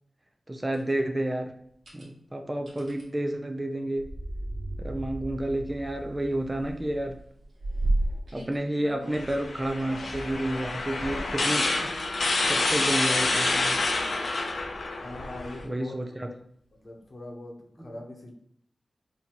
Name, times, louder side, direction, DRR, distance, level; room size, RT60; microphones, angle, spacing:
voice 1, 0.5-1.5 1.9-4.1 4.8-7.2 8.3-12.0 12.5-13.9 15.6-16.3 17.8-18.0, right 1 dB, 20° right, 4 dB, 0.4 m, -30 dB
sound 1, 0.7-0.9 1.7-2.1 2.7-3.0 4.2-4.5 4.9-5.0 5.3-6.3 6.5-9.2 9.8-10.3 11.0-11.9 13.1-13.7 14.2-14.3 16.7-16.8, right 1 dB, 60° right, 1.2 m, -33 dB
sound 2, 3.9-7.3 7.7-8.5 8.8-8.9 9.9-10.3, right 1 dB, 45° right, 0.8 m, -40 dB
sound 3, 9.1-15.6, left 2 dB, 75° left, 0.6 m, -28 dB
voice 2, 15.0-16.0 16.2-16.3 16.7-18.3, left 1 dB, 50° left, 0 dB, 0.9 m, -42 dB
4.1 x 2.8 x 2.9 m, 0.69 s
wide cardioid pair, 80°, 0 cm